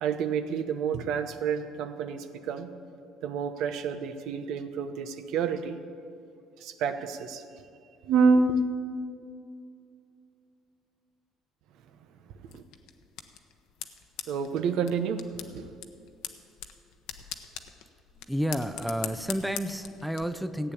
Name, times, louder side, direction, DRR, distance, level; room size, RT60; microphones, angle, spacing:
voice 1, 0.0-2.7 3.2-5.8 6.6-7.4 8.0-8.6 12.4-12.6 14.3-15.7, right 5 dB, 75° right, 9 dB, 0.9 m, -28 dB
sound 1, 12.5-20.2, left 10 dB, 80° left, 0.9 m, -43 dB
voice 2, 18.2-20.7, equal, ahead, 10 dB, 0.6 m, -31 dB
15.0 x 8.8 x 8.4 m, 2.5 s
cardioid pair, 115°, 0 cm